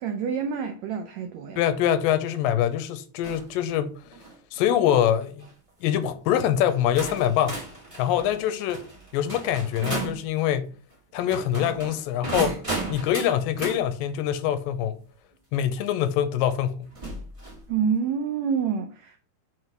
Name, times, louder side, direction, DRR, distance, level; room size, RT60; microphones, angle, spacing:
voice 1, 0.0-1.6 17.7-19.2, right 6 dB, 85° right, 1.5 m, -27 dB
voice 2, 1.6-3.9 4.5-5.5 5.8-7.6 8.0-8.8 9.1-10.7 11.1-12.6 12.9-15.0 15.5-16.9, left 10 dB, 90° left, 2.3 m, -24 dB
sound 1, 3.2-3.5 4.0-4.4 5.2-5.5 6.3-6.4 6.9-10.2 11.2-13.8 15.5-15.6 16.9-17.6, right 2 dB, 50° right, 0.3 m, -34 dB
7.4 x 3.2 x 5.9 m
omnidirectional pair, 4.0 m